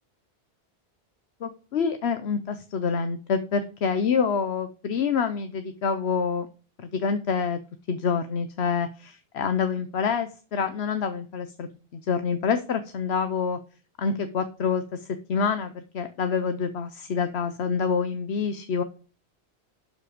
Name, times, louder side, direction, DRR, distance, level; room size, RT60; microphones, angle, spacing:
voice 1, 1.4-6.5 6.8-7.6 7.9-13.6 14.0-18.8, left 6 dB, 75° left, 9 dB, 1.1 m, -27 dB
12.0 x 5.9 x 5.1 m, 0.37 s
omnidirectional pair, 1.1 m